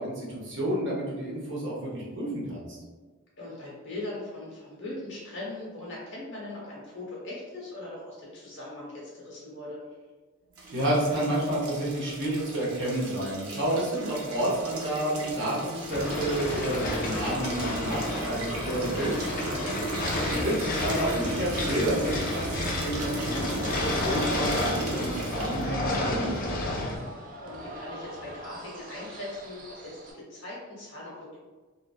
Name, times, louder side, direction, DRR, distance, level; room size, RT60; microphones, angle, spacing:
voice 1, 0.0-2.8 10.7-20.1 20.4-26.7, right 1 dB, 55° right, -5 dB, 0.8 m, -30 dB
voice 2, 3.4-9.8 20.1-20.5 27.4-31.4, left 2 dB, 55° left, -5 dB, 0.9 m, -40 dB
sound 1, 10.5-25.7, right 2 dB, 85° right, 0.6 m, -36 dB
sound 2, 15.9-27.0, left 1 dB, 40° left, 0.4 m, -31 dB
sound 3, 23.3-30.1, right 1 dB, 40° right, 0.3 m, -46 dB
2.8 x 2.4 x 2.3 m, 1.3 s
head